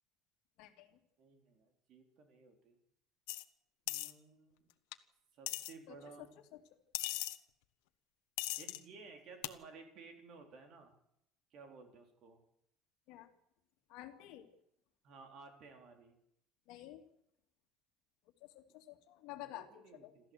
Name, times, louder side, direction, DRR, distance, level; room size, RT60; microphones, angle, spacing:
voice 1, 0.6-0.9 5.9-6.3 6.5-6.6 13.1-13.3 13.9-14.4 16.7-17.0 18.4-20.1, left 15 dB, 60° left, 6 dB, 2.4 m, -51 dB
voice 2, 1.2-2.8 3.9-4.7 5.4-6.3 8.6-10.9 11.5-12.4 15.0-16.1 19.3-20.3, right 4 dB, 40° right, 4 dB, 3.9 m, -56 dB
sound 1, 3.3-3.4 3.9-4.1 4.9-5.0 5.5-5.7 6.9-7.4 8.4-8.8 9.4-9.5, left 19 dB, 90° left, 1.2 m, -38 dB
27.5 x 13.5 x 8.1 m, 0.77 s
cardioid pair, 170°, 0 cm